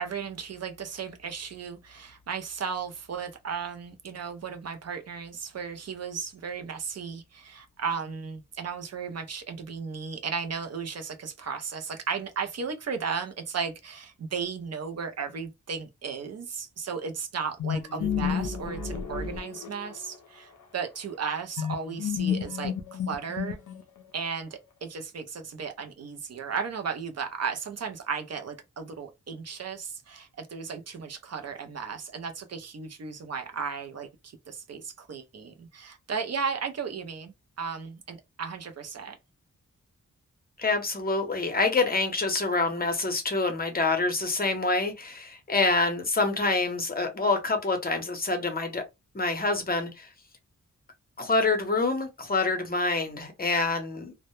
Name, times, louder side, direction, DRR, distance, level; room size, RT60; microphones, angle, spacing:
voice 1, 0.0-23.6 24.1-39.2, right 6 dB, 55° right, 0.5 m, -35 dB
sound 1, 17.6-20.2 21.6-24.0, left 7 dB, 70° left, 0.5 m, -31 dB
voice 2, 40.6-48.8 49.1-50.1 51.2-54.1, left 3 dB, 30° left, 0.7 m, -26 dB
2.0 x 2.0 x 2.9 m
wide cardioid pair, 115°, 31 cm